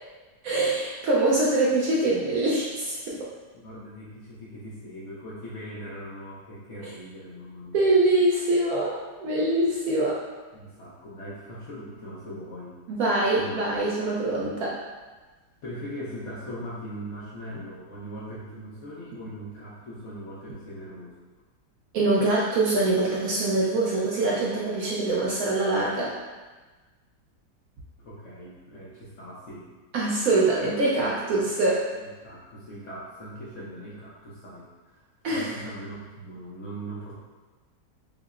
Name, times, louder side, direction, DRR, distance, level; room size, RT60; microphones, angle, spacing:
voice 1, 0.4-3.3 7.7-10.2 12.9-14.8 21.9-26.1 29.9-31.9 35.2-35.6, right 2 dB, 70° right, -5 dB, 0.9 m, -24 dB
voice 2, 3.5-7.8 10.5-12.8 13.4-13.6 15.6-21.1 28.0-29.7 31.0-31.4 32.0-37.1, equal, 60° left, -7 dB, 0.8 m, -40 dB
5.5 x 2.0 x 2.4 m, 1.3 s
omnidirectional pair, 1.8 m